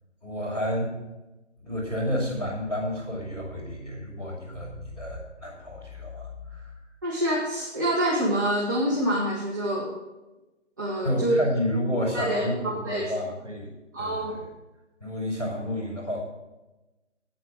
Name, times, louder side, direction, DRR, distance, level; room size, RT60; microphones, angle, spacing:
voice 1, 0.2-0.9 1.6-6.8 11.0-13.7 14.0-14.4 15.0-16.2, left 1 dB, 10° left, -12 dB, 4.8 m, -30 dB
voice 2, 7.0-9.9 10.8-11.4 12.1-13.1 13.9-14.4, right 1 dB, 15° right, -6 dB, 1.0 m, -26 dB
9.2 x 8.4 x 6.4 m, 1.1 s
figure-of-eight pair, 150°, 36 cm